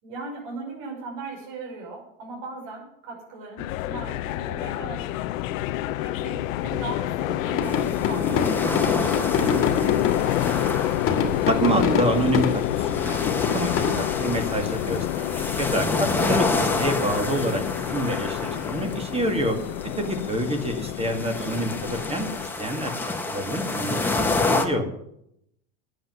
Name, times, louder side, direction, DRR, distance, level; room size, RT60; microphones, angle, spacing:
voice 1, 0.0-5.2 6.0-10.5, right 3 dB, 60° right, 0 dB, 5.8 m, -39 dB
sound 1, 3.6-22.5, left 14 dB, 80° left, 0.8 m, -28 dB
sound 2, 7.4-14.0, left 5 dB, 35° left, 2.0 m, -27 dB
sound 3, 7.6-24.7, left 3 dB, 5° left, 1.5 m, -30 dB
voice 2, 11.5-13.2 13.5-13.7 14.0-17.6 17.9-19.6 20.0-22.3 22.6-22.9 23.3-24.8, right 1 dB, 15° right, 6 dB, 2.0 m, -27 dB
11.0 x 7.7 x 9.6 m, 0.75 s
supercardioid pair, 130°, 39 cm